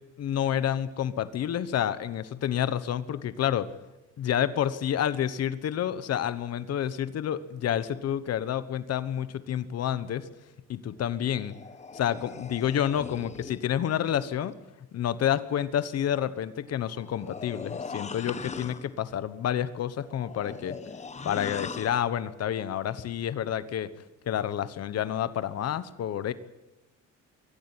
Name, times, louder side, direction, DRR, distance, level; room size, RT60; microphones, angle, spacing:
voice 1, 0.2-3.7 4.2-10.3 10.7-11.6 11.9-14.5 14.9-20.8 21.2-26.3, left 10 dB, 55° left, 14 dB, 1.2 m, -29 dB
sound 1, 11.2-13.7 16.8-18.9 19.9-22.1, left 5 dB, 20° left, 1.1 m, -40 dB
23.0 x 14.0 x 9.7 m, 0.99 s
cardioid pair, 145°, 30 cm